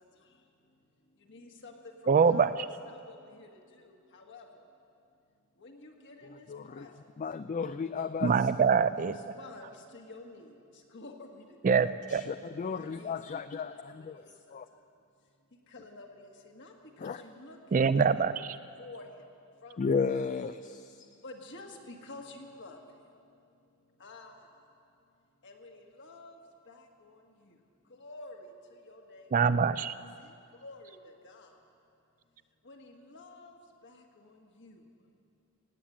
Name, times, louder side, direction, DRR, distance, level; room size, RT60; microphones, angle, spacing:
voice 1, 1.3-1.7 2.2-3.5 3.9-4.5 5.6-6.9 9.0-10.5 10.9-11.8 12.7-13.4 13.7-14.3 15.7-16.7 17.0-17.8 18.2-18.3 18.8-19.1 19.6-19.8 21.2-22.8 24.0-24.4 25.4-26.4 26.7-27.2 27.4-27.5 28.0-28.5 28.9-29.6 30.2-30.3 30.6-31.0 31.2-31.5 32.7-33.5 33.8-34.8, left 2 dB, 55° left, 2 dB, 1.7 m, -50 dB
voice 2, 2.1-2.5 8.2-9.2 11.6-12.2 17.7-18.5 29.3-29.9, right 5 dB, 35° right, 14 dB, 0.4 m, -24 dB
voice 3, 6.2-6.9 7.2-8.5 12.1-14.2 14.5-14.7 17.0-17.2 19.8-21.2, left 5 dB, 35° left, 11 dB, 0.3 m, -34 dB
17.5 x 8.8 x 8.7 m, 2.5 s
head